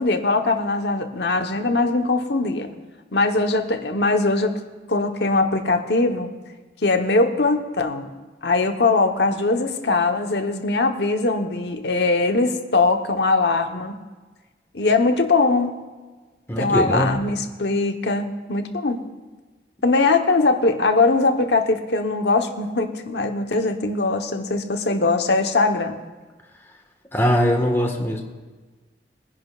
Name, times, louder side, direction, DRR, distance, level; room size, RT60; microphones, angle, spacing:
voice 1, 0.0-2.7 3.1-4.6 4.9-6.3 6.8-8.1 8.4-13.9 14.7-15.8 16.6-19.0 19.8-26.0, left 3 dB, 70° left, 5 dB, 1.1 m, -21 dB
voice 2, 16.5-17.1 27.1-28.2, equal, 15° left, 1 dB, 1.5 m, -21 dB
23.0 x 10.5 x 2.5 m, 1.3 s
head